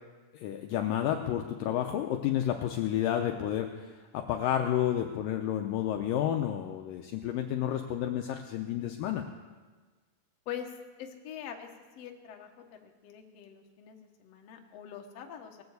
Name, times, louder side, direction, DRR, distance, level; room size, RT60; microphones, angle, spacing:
voice 1, 0.3-9.2, left 11 dB, 85° left, 4 dB, 1.9 m, -31 dB
voice 2, 11.0-11.7 11.9-12.5 12.8-15.6, left 9 dB, 65° left, 3 dB, 1.6 m, -43 dB
19.5 x 7.1 x 8.0 m, 1.4 s
omnidirectional pair, 4.7 m